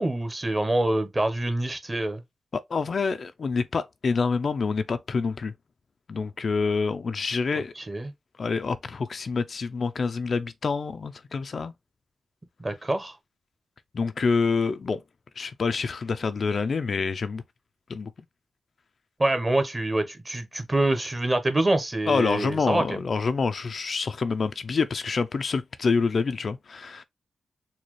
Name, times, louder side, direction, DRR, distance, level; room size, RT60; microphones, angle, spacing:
voice 1, 0.0-2.2 7.8-8.1 12.6-13.2 19.2-23.0, right 2 dB, 25° right, 0.9 m, -26 dB
voice 2, 2.7-5.5 6.1-7.7 8.4-11.7 13.9-15.0 15.4-17.4 17.9-18.1 22.1-27.0, left 4 dB, 55° left, 0.4 m, -27 dB
4.1 x 2.2 x 3.1 m
cardioid pair, 85°, 0 cm